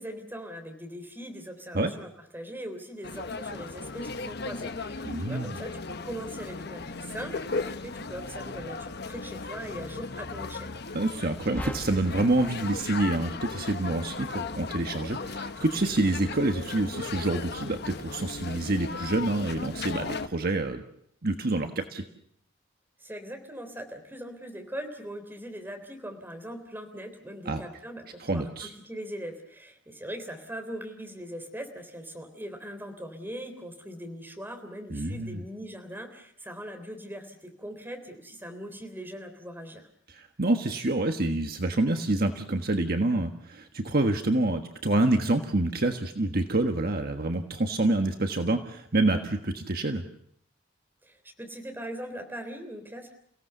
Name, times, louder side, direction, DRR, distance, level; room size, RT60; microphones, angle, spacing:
voice 1, 0.0-10.7 23.0-39.9 51.0-53.1, equal, 10° right, 5 dB, 3.5 m, -40 dB
sound 1, 3.0-20.3, left 4 dB, 55° left, 1.1 m, -37 dB
voice 2, 5.0-5.6 10.9-20.8 21.2-22.0 27.4-27.6 28.2-28.7 34.9-35.4 40.1-50.0, right 2 dB, 50° right, 5 dB, 1.5 m, -27 dB
sound 2, 11.5-14.0, left 1 dB, 10° left, 0.8 m, -40 dB
30.0 x 17.0 x 6.8 m, 0.70 s
head